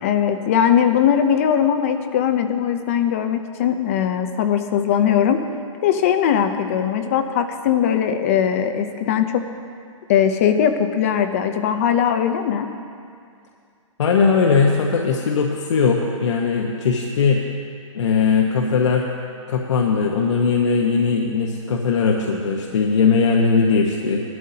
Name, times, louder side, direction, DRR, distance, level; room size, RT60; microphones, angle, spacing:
voice 1, 0.0-5.4 5.8-9.5 10.1-12.7, left 9 dB, 25° left, 8 dB, 0.6 m, -20 dB
voice 2, 14.0-17.4 17.9-19.0 19.5-24.2, left 5 dB, 60° left, -1 dB, 1.1 m, -19 dB
18.5 x 12.5 x 2.8 m, 2.4 s
hypercardioid pair, 160°, 17 cm